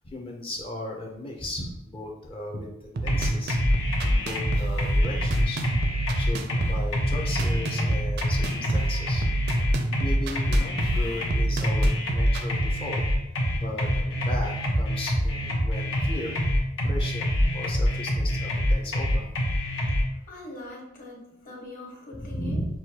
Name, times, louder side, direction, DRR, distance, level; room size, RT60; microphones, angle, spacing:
voice 1, 0.0-3.6 4.0-5.7 6.1-9.4 10.0-13.0 13.5-16.4 16.8-19.4 22.3-22.7, left 1 dB, 30° left, -1 dB, 0.5 m, -36 dB
sound 1, 3.0-12.5, right 2 dB, 55° right, 0.4 m, -30 dB
sound 2, 3.1-20.0, equal, 75° left, 0.9 m, -25 dB
voice 2, 20.3-22.6, left 2 dB, 45° left, -4 dB, 1.4 m, -42 dB
6.2 x 2.2 x 2.8 m, 0.85 s
head